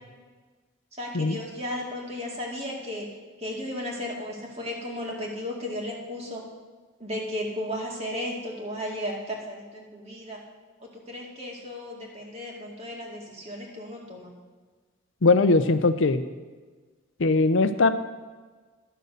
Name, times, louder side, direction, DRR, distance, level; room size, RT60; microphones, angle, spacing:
voice 1, 1.0-3.1 3.4-6.4 7.0-10.4 10.8-14.3, left 1 dB, 30° right, -1 dB, 2.1 m, -34 dB
voice 2, 15.2-16.2 17.2-17.9, left 3 dB, 65° left, 11 dB, 0.6 m, -20 dB
11.0 x 6.7 x 6.5 m, 1.4 s
head